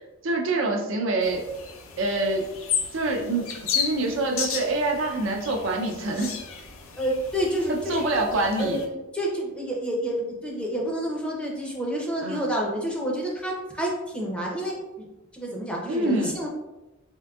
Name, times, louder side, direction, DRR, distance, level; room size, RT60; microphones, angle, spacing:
voice 1, 0.2-1.4 2.0-2.5 2.9-6.3 7.7-8.8 12.2-12.4 15.9-16.3, right 2 dB, 65° right, 1 dB, 0.5 m, -26 dB
sound 1, 1.2-8.9, left 6 dB, 75° left, 0.5 m, -34 dB
voice 2, 7.0-8.0 8.6-15.1 15.3-16.5, equal, 5° left, -2 dB, 0.6 m, -29 dB
3.6 x 3.5 x 2.3 m, 1.0 s
head